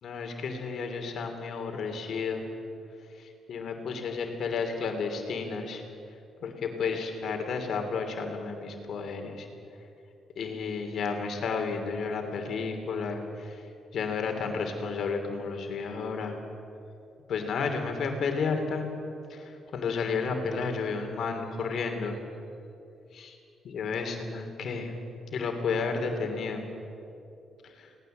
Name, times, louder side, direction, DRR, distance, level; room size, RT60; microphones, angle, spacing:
voice 1, 0.0-2.4 3.5-5.8 6.4-9.5 10.4-13.6 13.9-16.4 17.3-18.9 19.3-19.4 19.7-22.2 23.1-23.4 23.6-24.9 25.3-26.6, left 5 dB, 65° left, 4 dB, 3.0 m, -32 dB
20.0 x 18.0 x 7.9 m, 2.7 s
cardioid pair, 90°, 0 cm